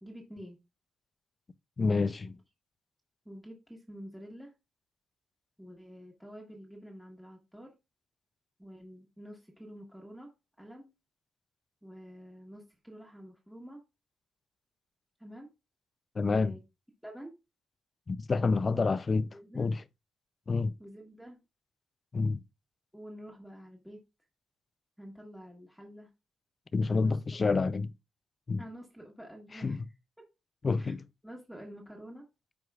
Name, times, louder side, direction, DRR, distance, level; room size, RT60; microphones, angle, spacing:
voice 1, 0.0-0.6 3.2-4.5 5.6-7.7 8.6-10.3 10.6-10.9 11.8-13.8 15.2-15.5 16.2-16.6 17.0-17.3 19.3-19.7 20.8-21.4 22.9-24.0 25.0-26.1 26.9-27.4 28.6-29.8 30.8-30.9 31.2-32.3, equal, ahead, 1.3 m, -48 dB
voice 2, 1.8-2.4 16.1-16.6 18.1-19.3 19.5-19.8 20.5-20.7 22.1-22.4 26.7-27.9 28.5-28.6 29.5-29.9 30.6-31.1, left 4 dB, 25° left, 0.4 m, -28 dB
14.0 x 4.7 x 2.3 m
cardioid pair, 170°, 0 cm